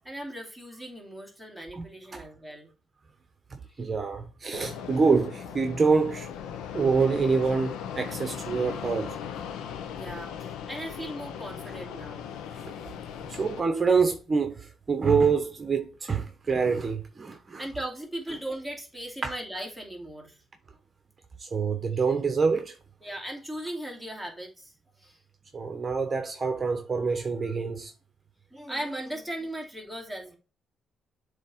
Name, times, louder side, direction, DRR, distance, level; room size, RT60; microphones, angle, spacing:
voice 1, 0.0-2.7 3.7-3.8 9.9-12.3 17.6-20.4 21.9-22.0 23.0-24.7 25.0-25.2 28.5-30.4, right 1 dB, 5° left, 2.8 m, -38 dB
voice 2, 3.8-6.3 6.7-9.1 13.3-17.6 19.2-19.3 21.4-22.7 25.5-27.9, right 5 dB, 35° right, 1.1 m, -26 dB
Fixed-wing aircraft airplane, 4.5-13.6, left 8 dB, 90° left, 0.8 m, -38 dB
7.4 x 3.5 x 4.4 m
cardioid pair, 90°, 0 cm